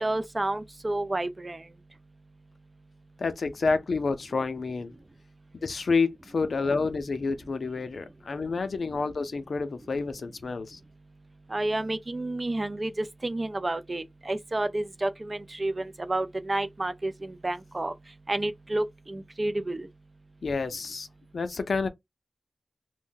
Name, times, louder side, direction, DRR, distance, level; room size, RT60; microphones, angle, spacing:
voice 1, 0.0-1.6 11.5-17.9 18.3-19.9, right 2 dB, 30° right, 0.3 m, -30 dB
voice 2, 3.2-4.9 5.6-10.8 20.4-21.1 21.3-21.9, left 4 dB, 70° left, 0.5 m, -29 dB
2.5 x 2.1 x 3.7 m
wide cardioid pair, 115°, 0 cm